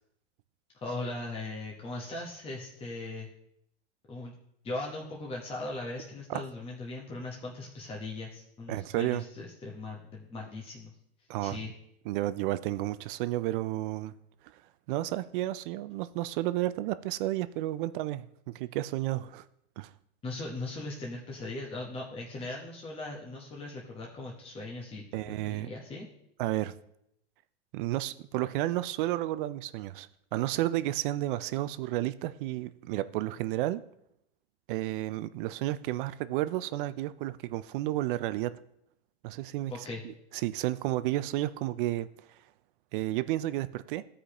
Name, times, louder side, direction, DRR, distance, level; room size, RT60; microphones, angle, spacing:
voice 1, 0.7-3.3 4.1-4.3 4.6-10.9 11.4-11.7 20.2-26.1 39.7-40.0, left 2 dB, 15° left, -2 dB, 1.0 m, -39 dB
voice 2, 8.7-9.2 11.3-11.6 12.1-14.1 14.9-18.2 18.5-19.4 19.8-19.9 25.1-25.7 26.4-26.7 27.7-33.8 34.7-38.5 39.2-42.1 42.9-44.0, right 15 dB, 50° right, 15 dB, 0.4 m, -32 dB
14.0 x 5.0 x 2.9 m, 0.76 s
hypercardioid pair, 125°, 34 cm